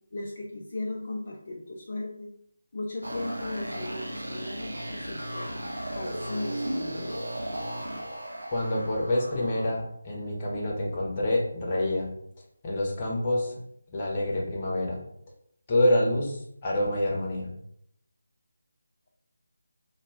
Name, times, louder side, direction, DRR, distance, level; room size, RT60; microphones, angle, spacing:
voice 1, 0.1-2.3 2.7-5.6 5.9-7.2, left 2 dB, 45° left, -1 dB, 0.3 m, -37 dB
sound 1, 3.0-9.7, right 1 dB, 80° right, 0.6 m, -35 dB
voice 2, 8.5-12.1 12.6-13.5 13.9-15.0 15.7-17.5, left 1 dB, 25° left, -3 dB, 0.7 m, -27 dB
2.4 x 2.2 x 3.3 m, 0.72 s
figure-of-eight pair, 160°, 0 cm